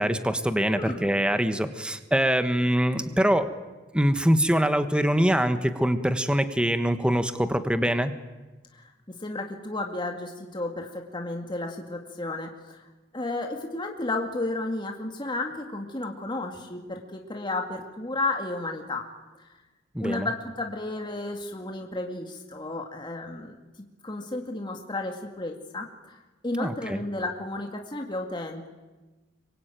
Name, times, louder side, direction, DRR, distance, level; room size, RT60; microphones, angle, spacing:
voice 1, 0.0-3.5 3.9-8.1 19.9-20.3 26.6-27.0, equal, 5° right, 9 dB, 1.3 m, -24 dB
voice 2, 0.7-1.1 8.7-12.9 13.1-19.0 19.4-19.5 20.0-26.2 26.4-28.7, left 2 dB, 25° left, 2 dB, 2.2 m, -33 dB
26.5 x 24.0 x 9.2 m, 1.2 s
head